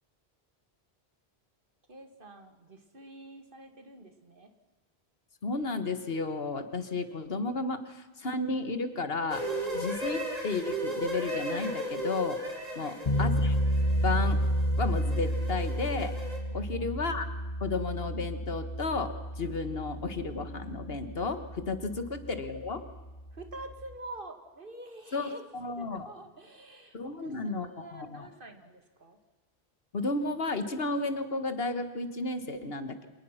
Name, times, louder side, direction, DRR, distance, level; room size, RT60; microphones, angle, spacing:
voice 1, 1.9-4.5 12.7-13.0 16.5-16.9 23.3-25.4 25.8-29.2, right 2 dB, 55° right, 7 dB, 2.2 m, -47 dB
voice 2, 5.4-9.4 9.7-12.4 12.8-13.6 14.0-14.4 14.8-16.1 16.5-17.3 17.6-22.8 25.1-26.1 26.9-28.3 29.9-33.1, left 3 dB, 65° left, 10 dB, 1.7 m, -33 dB
sound 1, 9.3-16.4, right 1 dB, 40° right, 3.0 m, -36 dB
sound 2, 13.1-23.9, equal, 40° left, 1.4 m, -31 dB
25.5 x 19.0 x 5.8 m, 1.3 s
omnidirectional pair, 1.1 m